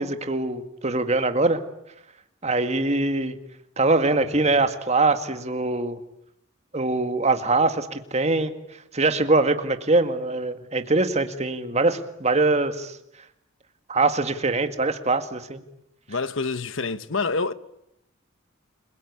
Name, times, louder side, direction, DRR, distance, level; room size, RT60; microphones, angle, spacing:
voice 1, 0.0-1.6 2.4-3.3 3.8-6.0 6.7-8.5 8.9-13.0 13.9-15.6, right 3 dB, 30° right, 2.0 m, -23 dB
voice 2, 16.1-17.5, left 4 dB, 65° left, 1.1 m, -27 dB
30.0 x 22.5 x 8.6 m
head